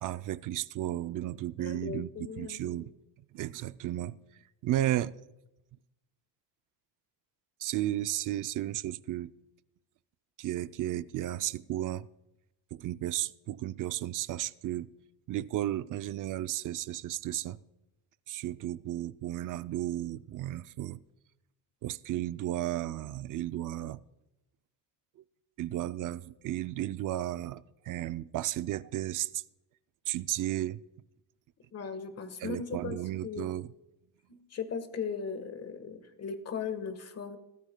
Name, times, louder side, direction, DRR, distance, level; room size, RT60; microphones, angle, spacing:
voice 1, 0.0-2.9 3.3-4.2 4.6-5.2 7.6-9.3 10.4-12.1 12.7-14.9 15.3-17.6 18.3-21.0 21.8-24.0 25.6-29.4 30.1-30.8 32.4-33.7, right 13 dB, 50° right, 0.4 m, -34 dB
voice 2, 1.6-2.8 31.7-33.5 34.3-37.4, left 6 dB, 35° left, 1.3 m, -38 dB
17.0 x 14.0 x 2.2 m
cardioid pair, 135°, 43 cm